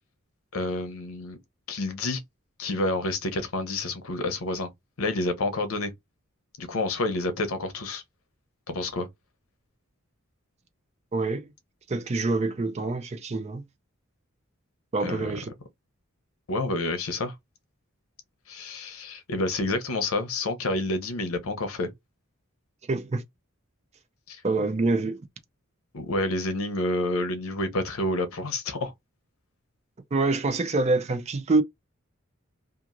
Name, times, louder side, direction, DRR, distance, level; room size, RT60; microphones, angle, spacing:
voice 1, 0.5-1.4 1.7-2.2 2.6-4.7 5.0-5.9 6.6-8.0 8.7-9.1 15.0-15.3 16.5-17.3 18.5-21.9 24.3-24.4 25.9-28.9, left 2 dB, 85° left, 0.7 m, -29 dB
voice 2, 11.1-11.5 11.9-13.6 14.9-15.5 22.9-23.2 24.4-25.2 30.1-31.6, right 3 dB, 30° right, 0.4 m, -26 dB
2.9 x 2.4 x 2.5 m
head